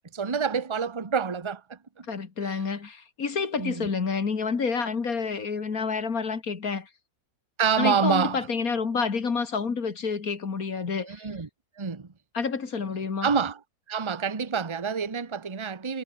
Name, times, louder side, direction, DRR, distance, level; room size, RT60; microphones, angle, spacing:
voice 1, 0.1-2.0 2.4-2.6 3.6-3.9 7.6-8.5 11.0-11.5 11.8-12.1 13.2-13.6 13.9-16.0, right 6 dB, 20° right, 1.1 m, -27 dB
voice 2, 2.1-6.9 7.8-11.3 12.3-13.3, left 5 dB, 65° left, 2.5 m, -29 dB
omnidirectional pair, 1.7 m